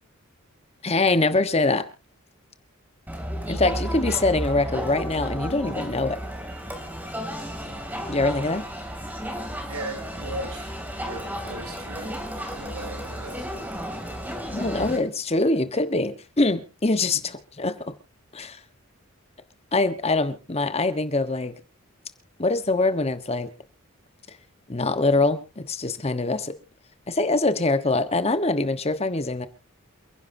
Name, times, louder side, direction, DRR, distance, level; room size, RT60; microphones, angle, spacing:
voice 1, 0.8-1.9 3.5-6.2 8.1-8.7 14.5-17.2 17.6-17.8 18.3-18.6 19.7-21.6 22.4-23.5 24.7-26.5 27.1-29.5, left 2 dB, 30° left, 11 dB, 1.1 m, -23 dB
Crowd, 3.1-15.0, equal, 10° right, 2.7 m, -33 dB
voice 2, 9.7-10.7 11.1-13.5 17.1-17.2, right 1 dB, 80° right, 4 dB, 4.8 m, -37 dB
28.5 x 10.5 x 2.7 m, 0.30 s
head